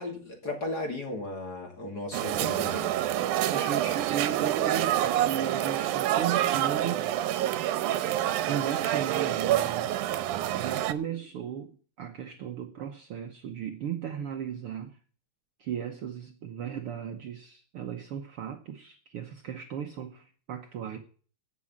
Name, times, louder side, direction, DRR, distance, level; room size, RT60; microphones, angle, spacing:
voice 1, 0.0-2.9, left 2 dB, 35° left, 2.9 m, -35 dB
sound 1, 2.1-10.9, right 12 dB, 90° right, 2.3 m, -27 dB
voice 2, 3.5-7.1 8.4-10.1 10.5-15.0 15.6-21.0, right 8 dB, 65° right, 1.6 m, -36 dB
16.0 x 6.3 x 7.4 m
omnidirectional pair, 3.5 m